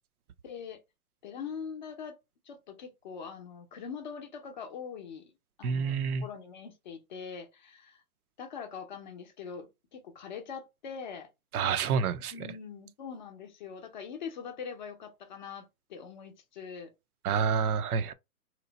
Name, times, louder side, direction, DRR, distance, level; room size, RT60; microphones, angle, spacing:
voice 1, 0.4-0.8 1.2-2.2 2.5-5.3 5.6-8.0 8.4-11.3 12.3-16.9, left 6 dB, 30° left, 0.6 m, -42 dB
voice 2, 5.6-6.3 11.5-12.5 17.2-18.1, right 6 dB, 70° right, 0.6 m, -28 dB
2.9 x 2.1 x 3.8 m
hypercardioid pair, 145°, 45 cm